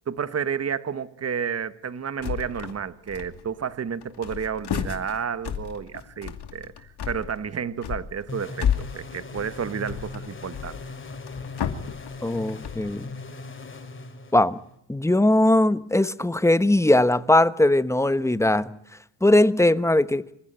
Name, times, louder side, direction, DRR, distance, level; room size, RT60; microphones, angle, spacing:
voice 1, 0.1-8.7 8.9-10.8, right 7 dB, 35° right, 1.3 m, -31 dB
sound 1, 2.2-2.8 3.1-3.7 4.0-13.0, left 8 dB, 60° left, 2.6 m, -32 dB
sound 2, 8.3-14.8, left 3 dB, 25° left, 2.7 m, -39 dB
voice 2, 12.2-13.1 14.3-14.6 14.9-18.7 19.2-20.2, left 1 dB, 5° left, 1.1 m, -20 dB
27.0 x 15.0 x 9.0 m
cardioid pair, 105°, 46 cm